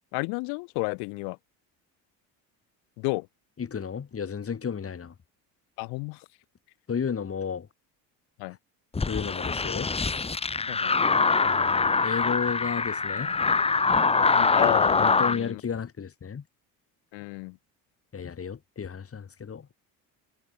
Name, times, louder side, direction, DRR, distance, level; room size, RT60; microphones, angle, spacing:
voice 1, 0.1-1.4 3.0-3.3 5.8-6.3 8.4-8.6 10.7-11.0 14.3-15.6 17.1-17.6, left 31 dB, 85° left, 6.0 m, -32 dB
voice 2, 3.6-5.1 6.9-7.7 9.1-9.9 11.4-13.3 15.0-16.4 18.1-19.7, left 6 dB, 35° left, 6.9 m, -33 dB
sound 1, 8.9-15.4, left 4 dB, 15° left, 1.0 m, -24 dB
supercardioid pair, 90°, 38 cm